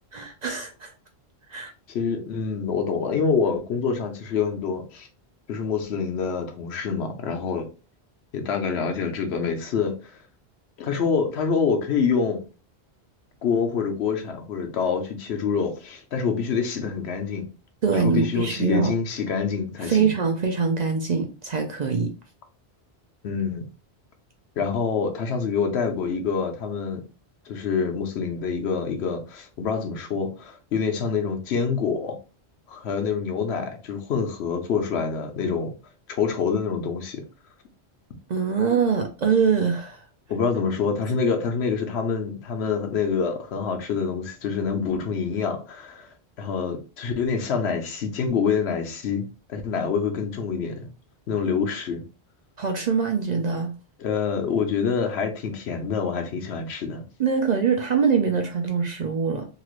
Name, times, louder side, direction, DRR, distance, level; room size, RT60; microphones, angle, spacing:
voice 1, 0.1-0.9 1.5-1.7 17.8-18.9 19.8-22.1 38.3-40.0 52.6-53.7 57.2-59.5, right 6 dB, 55° right, 0.5 m, -23 dB
voice 2, 1.9-5.1 5.5-7.7 8.3-10.2 10.8-12.4 13.4-17.5 17.9-20.1 23.2-23.6 24.6-27.0 27.5-32.2 32.7-35.7 36.1-37.2 40.3-50.9 51.3-52.0 54.0-57.0, left 5 dB, 80° left, 1.0 m, -26 dB
3.0 x 2.9 x 2.4 m
omnidirectional pair, 1.1 m